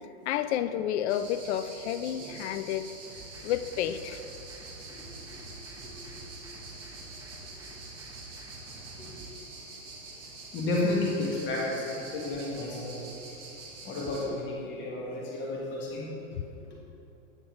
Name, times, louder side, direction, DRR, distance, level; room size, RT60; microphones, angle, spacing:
voice 1, 0.3-2.9 3.4-4.2 14.3-14.4 16.3-16.4, left 10 dB, 60° left, 11 dB, 0.5 m, -30 dB
sound 1, 1.1-14.3, right 3 dB, 40° right, 1.9 m, -46 dB
sound 2, 3.1-9.3, right 3 dB, 10° right, 1.4 m, -50 dB
voice 2, 5.8-6.3 7.4-7.5 9.0-9.2 10.5-13.1 13.8-16.1, left 2 dB, 30° left, -4 dB, 1.6 m, -32 dB
8.9 x 8.8 x 3.1 m, 2.7 s
hypercardioid pair, 130°, 38 cm